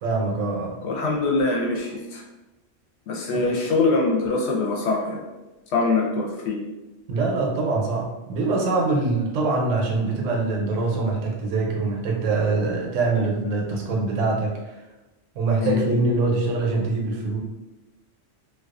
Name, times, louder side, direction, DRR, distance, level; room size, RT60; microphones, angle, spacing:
voice 1, 0.0-0.8 3.3-3.5 7.1-14.5 15.4-17.4, right 3 dB, 80° right, -1 dB, 1.0 m, -24 dB
voice 2, 0.8-2.2 3.1-5.2 5.7-6.6 15.6-15.9, left 3 dB, 65° left, -1 dB, 0.8 m, -23 dB
2.3 x 2.3 x 2.4 m, 1.1 s
omnidirectional pair, 1.3 m